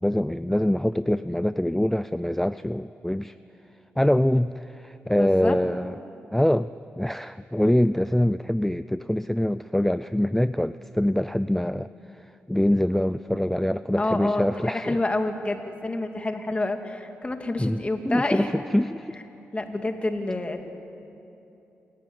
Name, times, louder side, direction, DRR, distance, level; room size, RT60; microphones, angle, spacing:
voice 1, 0.0-3.4 4.0-6.0 6.3-6.7 7.0-11.9 12.2-15.0 17.6-19.2, left 1 dB, 5° left, 14 dB, 0.4 m, -24 dB
voice 2, 5.2-5.6 14.0-18.5 19.5-20.7, left 2 dB, 25° left, 5 dB, 2.2 m, -28 dB
27.0 x 14.5 x 9.5 m, 2.9 s
cardioid pair, 60°, 5 cm